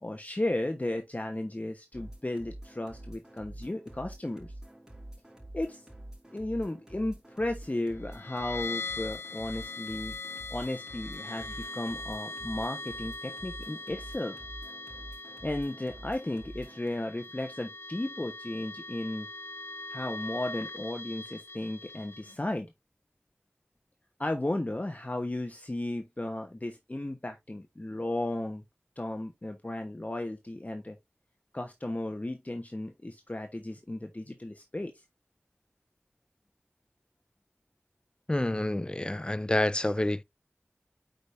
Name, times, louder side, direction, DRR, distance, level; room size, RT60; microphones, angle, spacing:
voice 1, 0.0-4.5 5.5-5.8 6.3-10.2 10.5-14.4 15.4-19.3 19.9-22.7 24.2-28.6 29.0-31.0 31.5-34.9, left 1 dB, 35° left, 1.0 m, -34 dB
sound 1, 1.9-16.9, right 1 dB, 15° right, 4.7 m, -47 dB
sound 2, 8.0-22.3, left 3 dB, 80° left, 0.7 m, -41 dB
voice 2, 38.3-40.2, left 1 dB, 20° left, 0.4 m, -28 dB
9.0 x 5.1 x 2.6 m
wide cardioid pair, 50°, 4 cm